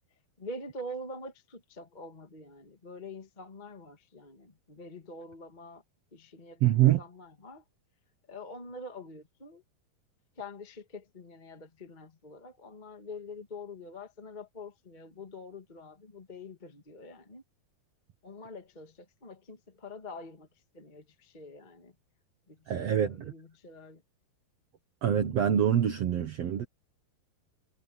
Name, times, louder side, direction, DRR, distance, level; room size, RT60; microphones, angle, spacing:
voice 1, 0.4-5.8 6.1-7.6 8.3-9.6 10.4-17.4 18.2-20.5 20.7-21.9 22.5-24.0, left 2 dB, 25° left, 0.9 m, -45 dB
voice 2, 6.6-7.0 22.7-23.3 25.0-26.6, right 10 dB, 90° right, 1.4 m, -25 dB
omnidirectional pair, 4.8 m